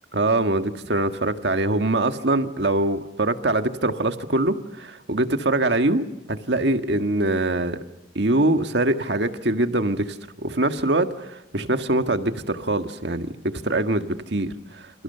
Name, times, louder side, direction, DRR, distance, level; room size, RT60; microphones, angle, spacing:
voice 1, 0.1-7.8 8.2-14.9, right 2 dB, 65° right, 7 dB, 1.7 m, -23 dB
29.5 x 28.0 x 6.8 m, 0.90 s
head